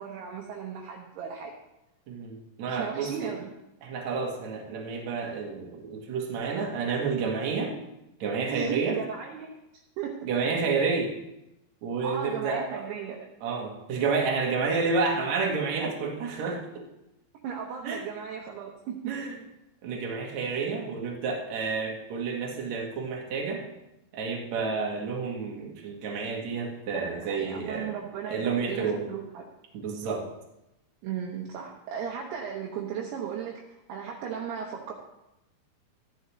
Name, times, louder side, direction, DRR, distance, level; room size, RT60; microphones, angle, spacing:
voice 1, 0.0-1.5 2.7-3.5 8.5-9.6 10.0-10.3 12.0-13.3 17.4-19.2 26.9-29.5 31.0-34.9, right 7 dB, 75° right, -1 dB, 2.9 m, -36 dB
voice 2, 2.1-3.3 3.8-7.8 8.2-9.0 10.2-11.1 11.8-12.8 13.4-16.8 17.8-18.0 19.1-19.3 19.8-23.6 24.1-27.9 28.3-29.0 29.7-30.3, right 4 dB, 55° right, -1 dB, 2.3 m, -30 dB
15.0 x 10.5 x 3.1 m, 0.90 s
omnidirectional pair, 5.1 m